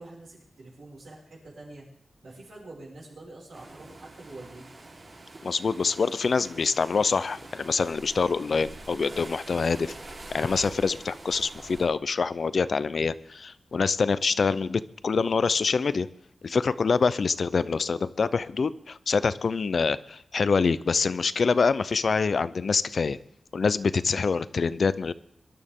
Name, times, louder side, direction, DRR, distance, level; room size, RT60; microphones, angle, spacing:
voice 1, 0.0-1.8 2.2-4.7, right 2 dB, 85° right, -4 dB, 5.8 m, -46 dB
sound 1, 3.5-11.9, right 2 dB, 50° right, 3.9 m, -45 dB
voice 2, 5.4-9.9 10.3-16.1 16.4-23.2 23.5-25.1, left 5 dB, 60° left, 15 dB, 0.5 m, -25 dB
24.5 x 12.0 x 3.7 m, 0.72 s
wide cardioid pair, 155°, 0 cm